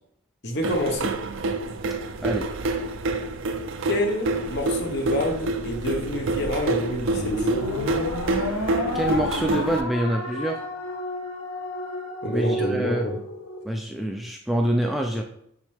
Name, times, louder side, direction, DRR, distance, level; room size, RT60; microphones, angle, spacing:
voice 1, 0.4-1.2 3.9-7.5 12.2-13.2, left 1 dB, 50° left, 3 dB, 1.2 m, -27 dB
sound 1, 0.6-9.8, right 2 dB, 60° right, 0.5 m, -27 dB
sound 2, 7.1-13.6, left 1 dB, 85° left, 1.1 m, -30 dB
voice 2, 8.9-10.6 12.3-13.1 13.6-15.2, right 1 dB, ahead, 1 dB, 0.4 m, -26 dB
6.2 x 5.5 x 3.4 m, 0.70 s
head